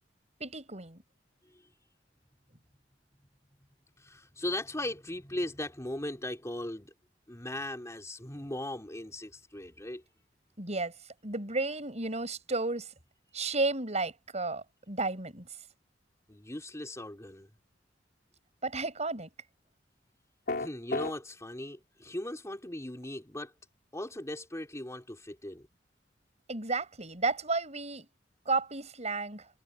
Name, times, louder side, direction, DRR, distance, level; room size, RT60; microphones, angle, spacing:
voice 1, 0.4-1.0 10.6-11.0 11.2-12.9 13.3-15.5 18.6-19.3 26.5-28.1 28.5-29.5, right 3 dB, 40° right, 7.4 m, -32 dB
voice 2, 4.0-6.9 7.3-10.0 16.3-17.5 20.6-23.5 23.9-25.7, left 1 dB, 15° left, 3.6 m, -38 dB
sound 1, 20.5-21.1, left 3 dB, 60° left, 3.7 m, -31 dB
head